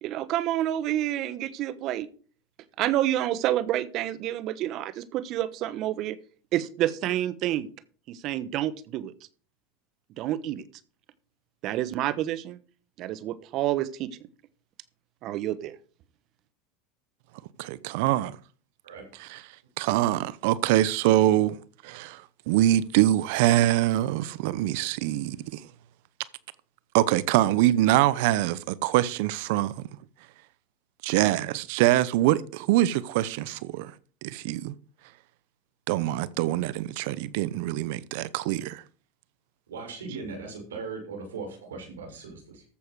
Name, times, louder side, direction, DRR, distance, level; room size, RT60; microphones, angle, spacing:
voice 1, 0.0-2.1 2.8-6.2 6.5-7.7 8.1-9.1 10.2-10.6 11.6-12.6 13.0-14.1 15.2-15.7, right 13 dB, 50° right, 1.1 m, -28 dB
voice 2, 17.6-18.4 19.2-19.4 19.8-25.6 26.9-29.9 31.0-33.9 34.2-34.7 35.9-38.8, right 15 dB, 65° right, 0.7 m, -24 dB
voice 3, 39.7-42.6, right 4 dB, 90° right, 5.6 m, -38 dB
14.0 x 7.1 x 4.7 m
hypercardioid pair, 95°, 0 cm